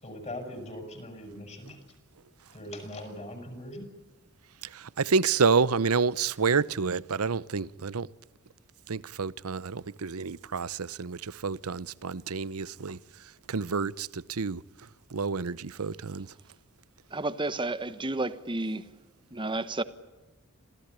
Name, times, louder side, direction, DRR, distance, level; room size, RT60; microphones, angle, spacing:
voice 1, 0.0-1.8 2.5-3.9, left 1 dB, 30° left, 7.1 m, -40 dB
voice 2, 4.7-8.1 8.9-13.0 13.5-14.6 15.1-16.3, right 5 dB, 85° right, 0.8 m, -28 dB
voice 3, 17.1-18.8 19.3-19.8, right 2 dB, 20° right, 1.1 m, -31 dB
27.0 x 17.0 x 10.0 m
head